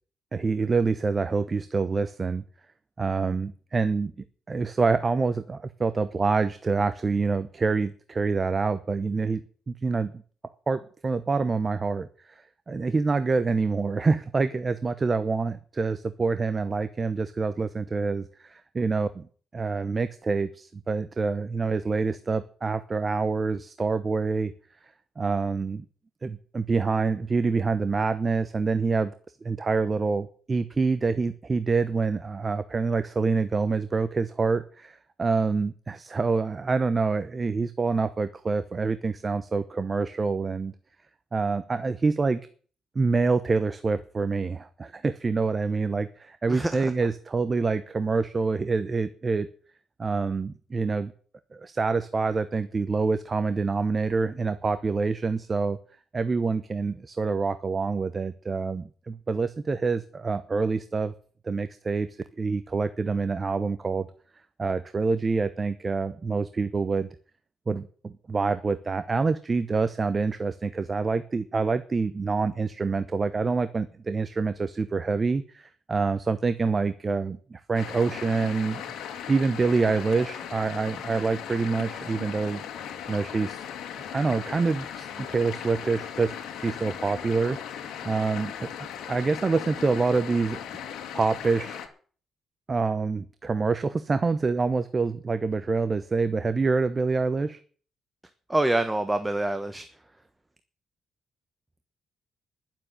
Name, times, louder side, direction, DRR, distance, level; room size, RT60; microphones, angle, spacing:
voice 1, 0.3-2.4 3.0-4.1 4.5-10.1 10.7-19.3 19.5-24.5 25.2-25.8 26.2-29.1 29.4-40.7 41.3-42.4 42.9-49.5 50.0-51.1 51.5-55.8 56.1-61.1 61.4-62.1 62.4-64.1 64.6-67.1 67.7-78.8 79.3-82.6 83.1-83.6 84.1-90.6 91.1-91.8 92.7-97.6, right 4 dB, 30° right, 12 dB, 0.9 m, -26 dB
voice 2, 46.5-46.9 98.5-99.9, right 1 dB, 10° right, 9 dB, 1.2 m, -26 dB
sound 1, 77.7-91.9, left 9 dB, 80° left, 2.2 m, -38 dB
11.5 x 7.5 x 9.7 m, 0.43 s
cardioid pair, 100°, 0 cm